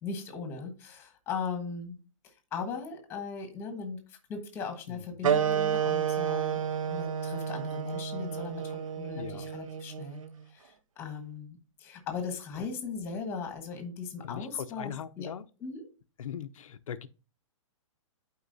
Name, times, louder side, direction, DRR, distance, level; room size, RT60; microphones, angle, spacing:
voice 1, 0.0-2.0 2.5-6.6 6.9-10.2 10.5-15.3 15.6-15.8, left 5 dB, 15° left, 1.2 m, -38 dB
sound 1, 5.2-10.3, right 8 dB, 85° right, 0.7 m, -30 dB
voice 2, 9.1-9.6 12.6-12.7 14.2-15.5 16.2-17.1, left 9 dB, 80° left, 0.6 m, -40 dB
11.0 x 4.5 x 2.6 m
hypercardioid pair, 165°, 17 cm